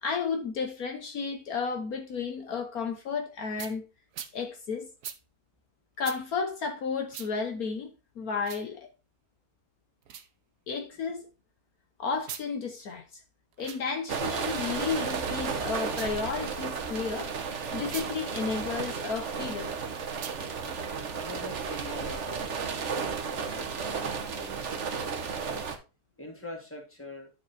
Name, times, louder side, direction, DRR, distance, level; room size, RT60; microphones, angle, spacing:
voice 1, 0.0-3.9 4.3-4.9 6.0-7.9 8.2-8.9 10.7-11.3 12.0-13.2 13.6-17.3 17.7-19.7, left 5 dB, 65° left, 1.5 m, -32 dB
sound 1, 3.6-3.7 4.1-4.3 5.0-5.2 6.0-6.2 7.1-7.3 8.4-8.7 10.0-10.3 12.2-12.5 13.5-13.8 15.8-16.2 17.8-18.1 20.1-20.4, right 9 dB, 75° right, 1.4 m, -41 dB
sound 2, 14.1-25.8, right 5 dB, 50° right, 1.4 m, -33 dB
voice 2, 21.1-25.7 26.2-27.3, left 1 dB, 10° left, 2.3 m, -44 dB
10.5 x 5.1 x 4.2 m
omnidirectional pair, 1.7 m